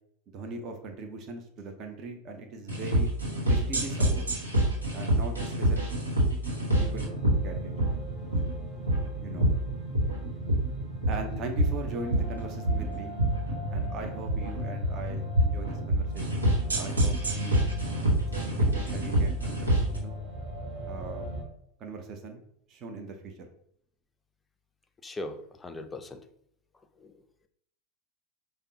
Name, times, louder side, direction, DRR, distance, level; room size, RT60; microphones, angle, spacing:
voice 1, 0.3-3.1 3.5-4.3 4.9-5.8 6.8-7.1 7.4-7.7 9.2-9.5 11.1-13.2 13.7-17.6 18.6-20.2 20.8-21.3 21.8-22.4 22.7-23.5, right 3 dB, 40° right, 4 dB, 0.5 m, -40 dB
sound 1, 2.7-20.0, right 1 dB, 80° right, 1.0 m, -27 dB
sound 2, 6.7-21.4, equal, 25° right, 1.3 m, -38 dB
voice 2, 25.0-26.2 27.0-27.1, left 2 dB, 15° left, 8 dB, 0.4 m, -39 dB
5.0 x 2.0 x 2.7 m, 0.69 s
figure-of-eight pair, 85°, 0 cm